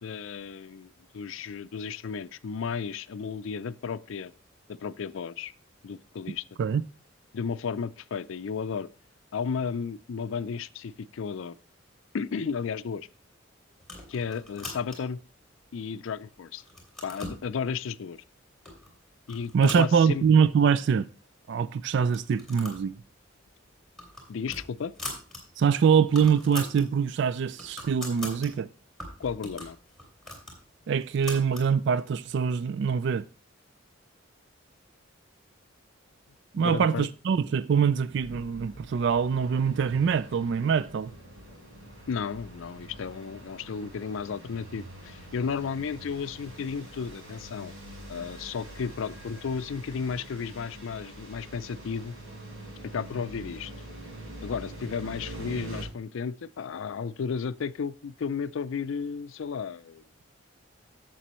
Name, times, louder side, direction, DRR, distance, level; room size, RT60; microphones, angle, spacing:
voice 1, 0.0-4.3 4.7-5.5 5.8-6.5 7.3-8.9 9.3-11.6 12.1-13.1 14.1-15.2 15.7-16.6 17.0-18.2 19.3-20.2 24.3-24.9 29.2-29.8 36.6-37.1 42.1-47.8 48.1-52.2 52.8-53.7 54.4-60.0, left 6 dB, 70° left, 0.4 m, -33 dB
sound 1, 13.8-15.2 15.8-16.3 16.6-17.4 18.2-18.3 18.6-18.9 19.2-20.5 20.8-20.9 21.1-21.2 22.0-22.9 23.2-23.4 23.8-25.4 25.7-25.8 26.0-26.9 27.3-28.5 29.0-31.7, left 1 dB, ahead, 3.0 m, -41 dB
voice 2, 19.5-21.1 21.5-23.0 25.6-28.7 30.9-33.2 36.5-41.1, right 6 dB, 55° right, 0.3 m, -24 dB
sound 2, 38.2-55.9, right 1 dB, 80° right, 4.8 m, -45 dB
11.0 x 7.6 x 3.0 m
head